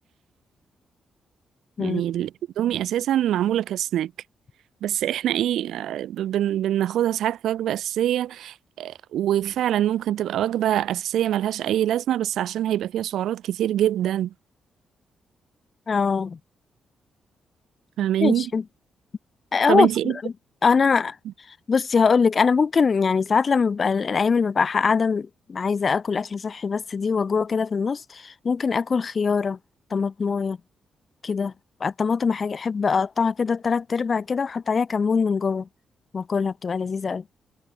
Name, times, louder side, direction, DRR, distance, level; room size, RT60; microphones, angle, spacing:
voice 1, 1.8-2.3 2.6-4.1 4.8-14.3 18.0-18.5 19.7-20.1, right 11 dB, 90° right, 1.4 m, -24 dB
voice 2, 15.9-16.4 18.2-18.6 19.5-19.9 20.2-20.3 20.6-21.2 21.7-29.6 29.9-30.6 31.2-31.5 31.8-35.7 36.1-37.2, left 5 dB, 30° left, 0.8 m, -22 dB
wide cardioid pair, 170°, 0 cm